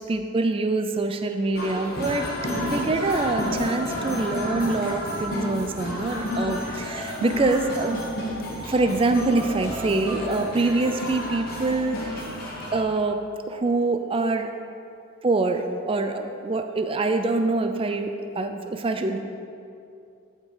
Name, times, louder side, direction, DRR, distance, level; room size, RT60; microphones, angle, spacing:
voice 1, 0.0-2.2 2.7-8.0 8.7-12.2 12.7-14.5 15.2-19.2, right 3 dB, 25° right, 7 dB, 0.3 m, -25 dB
sound 1, 1.6-12.8, left 1 dB, 45° left, 1.5 m, -31 dB
10.5 x 4.4 x 4.8 m, 2.6 s
head